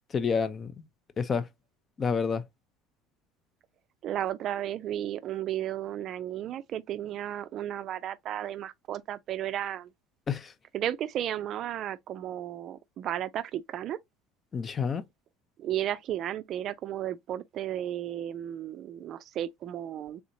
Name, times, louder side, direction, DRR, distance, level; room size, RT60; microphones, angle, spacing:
voice 1, 0.1-0.8 1.2-1.5 2.0-2.4 10.3-10.5 14.5-15.0, left 5 dB, 30° left, 0.4 m, -29 dB
voice 2, 4.0-9.9 10.7-14.0 15.6-20.2, right 11 dB, 50° right, 0.3 m, -34 dB
3.4 x 2.8 x 2.6 m
supercardioid pair, 100°, 0 cm